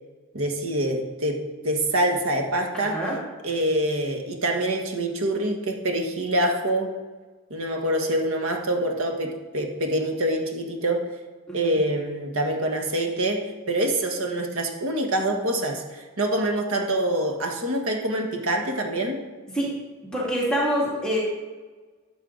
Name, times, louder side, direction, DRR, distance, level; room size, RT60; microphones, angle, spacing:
voice 1, 0.3-3.0 3.4-6.9 7.5-11.1 11.5-19.2, right 1 dB, 70° right, 3 dB, 1.6 m, -25 dB
voice 2, 2.7-3.2 11.5-11.7 19.5-19.7 20.1-21.2, equal, 5° left, -6 dB, 2.7 m, -25 dB
12.5 x 8.0 x 4.0 m, 1.3 s
head